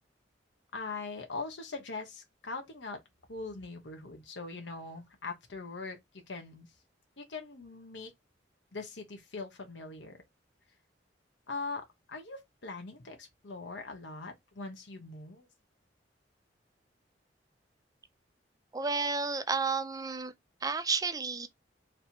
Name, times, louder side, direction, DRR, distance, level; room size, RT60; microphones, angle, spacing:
voice 1, 0.7-3.0 3.3-6.0 6.3-6.7 7.2-8.1 8.7-10.2 11.5-15.5, left 3 dB, 75° left, 1.0 m, -41 dB
voice 2, 18.7-20.3 20.6-21.5, right 4 dB, 20° right, 0.5 m, -31 dB
3.3 x 2.8 x 4.3 m
head